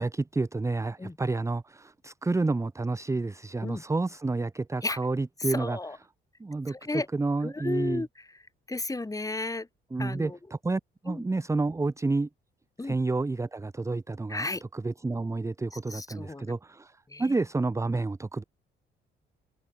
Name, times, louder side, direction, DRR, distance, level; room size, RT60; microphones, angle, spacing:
voice 1, 0.0-5.8 6.4-6.7 7.1-8.0 9.9-12.3 12.8-14.5 14.7-18.4, right 3 dB, 15° right, 0.8 m, -30 dB
voice 2, 5.4-6.0 6.7-7.1 7.4-8.3 8.7-9.7 10.0-10.4 11.1-11.2 12.8-13.0 14.3-14.6 15.7-16.6 17.1-17.3, left 2 dB, 15° left, 4.8 m, -33 dB
cardioid pair, 90°, 20 cm